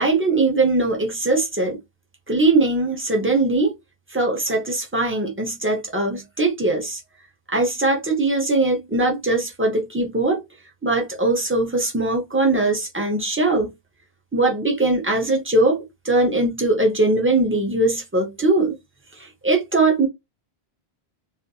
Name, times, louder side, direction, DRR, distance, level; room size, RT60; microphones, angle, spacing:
voice 1, 0.0-1.8 2.3-3.7 4.1-7.0 7.5-10.4 10.8-13.7 14.3-18.8 19.2-20.1, right 2 dB, 15° right, 0.6 m, -21 dB
2.6 x 2.5 x 2.3 m
omnidirectional pair, 1.0 m